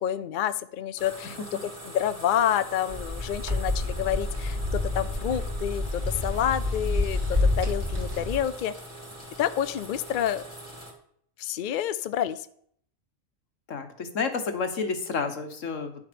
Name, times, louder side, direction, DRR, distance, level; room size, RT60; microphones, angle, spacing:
voice 1, 0.0-8.7 9.4-10.4 11.4-12.5, left 10 dB, 60° left, 13 dB, 0.5 m, -28 dB
sound 1, 1.0-10.9, right 1 dB, 10° right, 2.4 m, -43 dB
sound 2, 2.9-8.4, left 2 dB, 35° right, 2.3 m, -28 dB
voice 2, 13.7-16.1, left 5 dB, 80° left, 8 dB, 1.6 m, -30 dB
10.0 x 7.3 x 5.1 m, 0.65 s
omnidirectional pair, 1.3 m